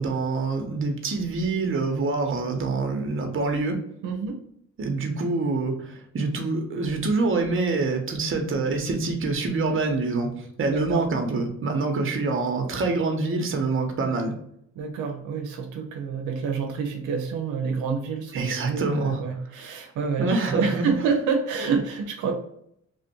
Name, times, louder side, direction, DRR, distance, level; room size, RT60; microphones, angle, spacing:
voice 1, 0.0-3.8 4.8-14.3 18.3-19.2 20.2-20.9, right 3 dB, 45° right, 4 dB, 0.9 m, -26 dB
voice 2, 4.0-4.4 10.6-11.0 14.8-22.4, right 5 dB, 85° right, 3 dB, 0.6 m, -28 dB
3.0 x 2.5 x 4.3 m, 0.72 s
cardioid pair, 90°, 30 cm